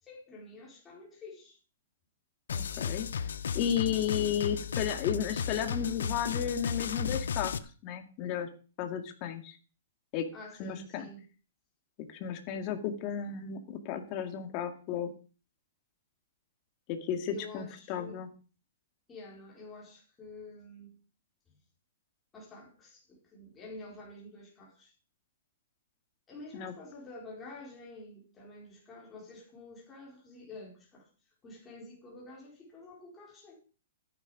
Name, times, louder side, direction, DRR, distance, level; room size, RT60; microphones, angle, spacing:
voice 1, 0.0-1.6 10.3-11.3 17.3-18.2 19.1-21.0 22.3-24.9 26.3-31.1 31.4-33.6, left 2 dB, 10° left, 4.4 m, -49 dB
sound 1, 2.5-7.6, left 7 dB, 85° left, 1.0 m, -34 dB
voice 2, 2.5-3.1 3.5-7.5 7.8-8.5 8.8-9.6 10.1-10.3 10.6-11.1 12.2-15.1 16.9-18.3 26.5-26.7, left 9 dB, 30° left, 2.1 m, -33 dB
13.5 x 10.5 x 5.0 m
hypercardioid pair, 165°, 0 cm